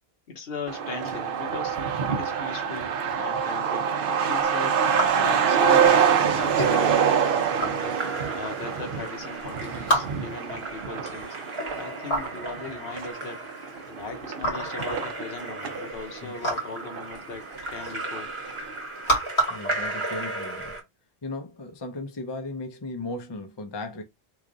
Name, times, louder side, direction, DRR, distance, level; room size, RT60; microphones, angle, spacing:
voice 1, 0.3-1.8 2.1-4.9 5.2-7.0 7.5-8.0 8.4-11.4 11.8-13.4 13.9-18.3, left 4 dB, 65° left, 1.0 m, -38 dB
Truck, 0.7-15.9 16.2-16.3 16.5-17.4 17.7-17.8 18.2-18.5, right 7 dB, 60° right, 0.8 m, -25 dB
sound 1, 4.4-20.8, right 1 dB, 85° left, 1.7 m, -33 dB
Splash splatter / Drip / Trickle dribble, 6.5-20.8, right 1 dB, 30° right, 1.0 m, -36 dB
voice 2, 19.5-20.8 21.2-24.0, left 2 dB, 30° left, 0.6 m, -36 dB
3.1 x 2.4 x 3.8 m
omnidirectional pair, 1.1 m